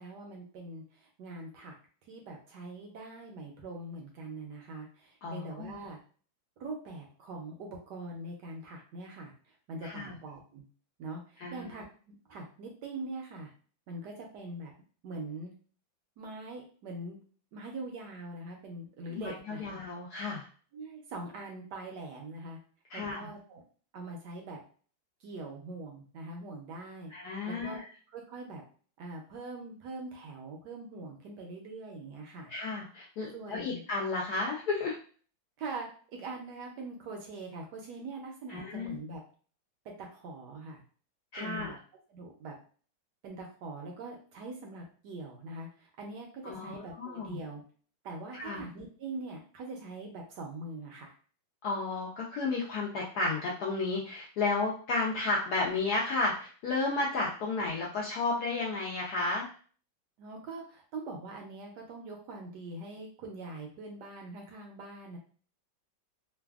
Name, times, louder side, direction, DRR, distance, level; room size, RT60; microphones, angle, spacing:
voice 1, 0.0-1.7 2.1-6.0 6.6-9.3 9.7-10.7 11.0-13.5 13.9-14.7 15.0-15.5 16.2-17.2 17.5-19.8 20.7-22.6 22.9-23.6 23.9-24.6 25.2-27.1 27.4-27.8 28.1-28.6 29.0-32.5 33.3-33.8 35.6-39.2 39.8-40.8 41.4-41.8 42.1-42.5 43.2-47.6 48.0-51.1 60.2-65.2, right 2 dB, 70° right, 1 dB, 1.0 m, -43 dB
voice 2, 5.2-5.7 9.8-10.2 11.4-11.7 19.1-20.5 22.9-23.3 27.1-27.9 32.5-35.0 38.5-38.9 41.3-41.8 46.4-47.4 48.3-48.6 51.6-59.5, left 3 dB, 75° left, -3 dB, 0.9 m, -33 dB
3.3 x 2.2 x 2.3 m, 0.42 s
omnidirectional pair, 2.2 m